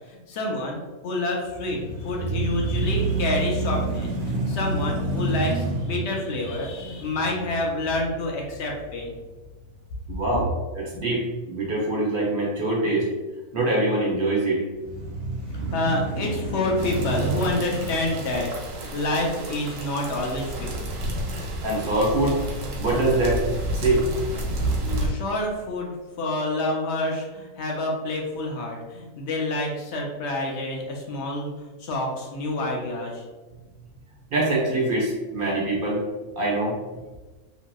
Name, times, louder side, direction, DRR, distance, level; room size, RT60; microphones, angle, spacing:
voice 1, 0.1-9.1 15.5-20.7 24.8-31.5 31.8-33.2, left 1 dB, 65° left, 0 dB, 0.7 m, -28 dB
sound 1, 1.5-9.6 10.1-10.2 14.7-19.2, right 2 dB, 90° right, 1.1 m, -29 dB
voice 2, 10.1-10.5 10.7-13.1 13.5-14.6 21.3-22.4 22.8-23.4 23.7-24.0 34.3-36.0 36.4-36.8, right 2 dB, 45° right, -4 dB, 0.7 m, -24 dB
sound 2, 16.8-25.1, right 1 dB, 70° right, 1.0 m, -31 dB
2.9 x 2.7 x 2.2 m, 1.2 s
omnidirectional pair, 1.6 m